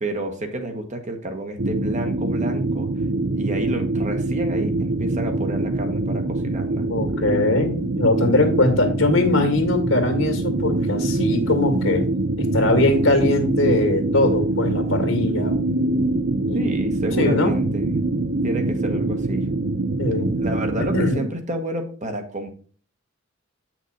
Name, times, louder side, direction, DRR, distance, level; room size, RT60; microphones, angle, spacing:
voice 1, 0.0-2.9 3.4-6.8 16.5-17.9 18.4-19.5 20.4-22.5, right 1 dB, 35° right, 5 dB, 1.3 m, -29 dB
sound 1, 1.6-21.1, right 2 dB, 55° right, 0.7 m, -24 dB
voice 2, 6.9-12.1 12.4-15.6 16.1-16.2 16.5-16.7 17.2-17.6 20.0-20.3 20.9-21.2, left 2 dB, 75° left, 5 dB, 2.1 m, -21 dB
8.3 x 6.0 x 4.2 m, 0.42 s
head